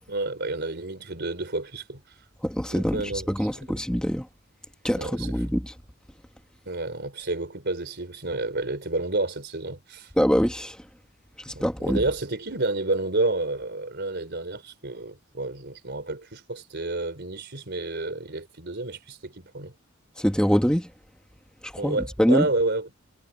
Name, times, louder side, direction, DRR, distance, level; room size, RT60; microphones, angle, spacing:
voice 1, 0.1-2.0 2.7-3.3 3.5-3.7 5.0-5.3 6.7-10.1 11.5-19.7 21.8-22.9, right 2 dB, 55° right, 4.1 m, -30 dB
voice 2, 2.4-3.0 3.3-4.3 4.8-5.7 10.2-10.8 11.5-12.0 20.2-20.9 21.6-22.5, equal, 5° left, 1.7 m, -24 dB
head